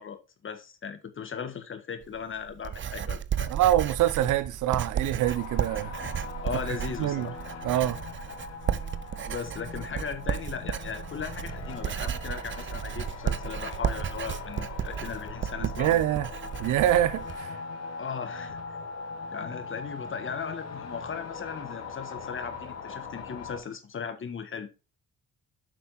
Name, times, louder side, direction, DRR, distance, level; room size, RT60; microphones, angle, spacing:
voice 1, 0.0-3.5 6.4-7.4 9.3-16.0 18.0-18.6 19.3-24.7, left 6 dB, 40° left, 1.5 m, -37 dB
Writing, 2.0-17.4, right 8 dB, 40° right, 0.6 m, -34 dB
voice 2, 3.5-5.9 7.0-7.3 7.6-8.0 15.8-16.3 16.6-17.5, right 12 dB, 85° right, 0.8 m, -25 dB
sound 1, 5.2-23.6, left 4 dB, 55° left, 1.8 m, -40 dB
7.7 x 5.6 x 4.2 m
cardioid pair, 90°, 30 cm